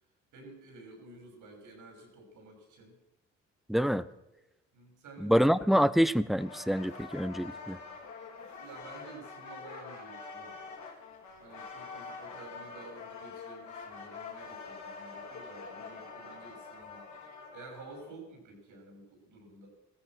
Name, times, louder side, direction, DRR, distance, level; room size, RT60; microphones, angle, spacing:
voice 1, 0.3-3.0 4.7-5.6 8.6-10.5 11.4-17.0 17.5-19.7, right 3 dB, 80° right, 2 dB, 6.2 m, -51 dB
voice 2, 3.7-4.1 5.2-7.8, equal, ahead, 17 dB, 0.6 m, -26 dB
sound 1, 6.4-18.1, left 4 dB, 70° left, 4.7 m, -45 dB
16.0 x 14.0 x 6.1 m, 0.97 s
cardioid pair, 90°, 30 cm